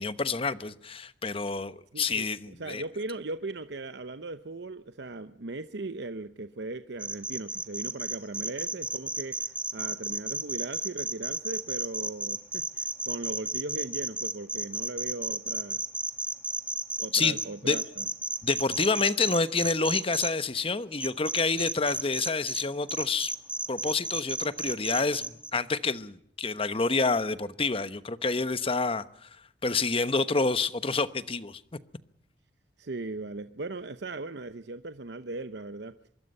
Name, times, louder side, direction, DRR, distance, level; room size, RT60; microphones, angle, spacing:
voice 1, 0.0-2.8 17.1-17.4 17.6-17.8 18.4-23.3 23.7-29.3 29.6-31.6, left 4 dB, 30° left, 1.0 m, -28 dB
voice 2, 1.9-15.8 17.0-18.1 32.8-36.1, right 2 dB, 70° right, 0.9 m, -38 dB
sound 1, 7.0-20.3 21.0-22.6 22.9-25.5, right 2 dB, 5° right, 1.7 m, -32 dB
25.0 x 22.5 x 5.5 m
head